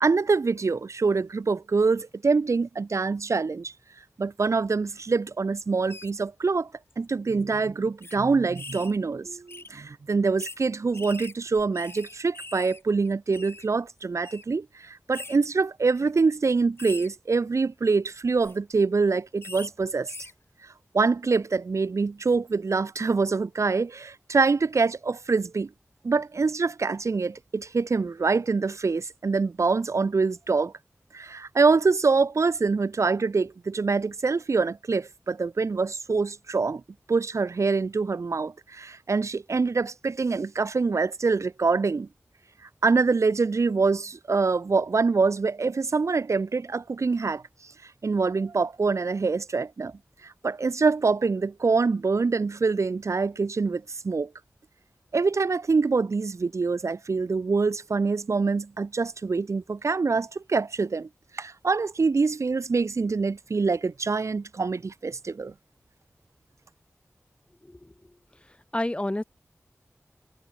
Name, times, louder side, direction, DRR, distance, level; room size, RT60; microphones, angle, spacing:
voice 1, 0.0-3.7 4.2-6.7 7.0-20.1 20.9-25.7 26.0-30.7 31.1-36.8 37.1-42.1 42.8-47.4 48.0-49.9 50.2-54.3 55.1-61.1 61.3-65.5, right 4 dB, 75° right, 1.2 m, -25 dB
sound 1, 5.9-6.1 6.9-7.1 7.3-7.4 8.0-8.2 8.6-9.0 9.5-9.7 10.4-10.6 10.9-12.8 13.1-13.7 14.2-14.4 15.1-15.4 15.9-16.1 16.8-17.1 18.3-18.6 19.4-19.7 20.1-20.3, left 3 dB, 50° left, 2.5 m, -42 dB
voice 2, 67.6-67.9 68.5-69.2, left 1 dB, 20° left, 2.9 m, -30 dB
wide cardioid pair, 65°, 5 cm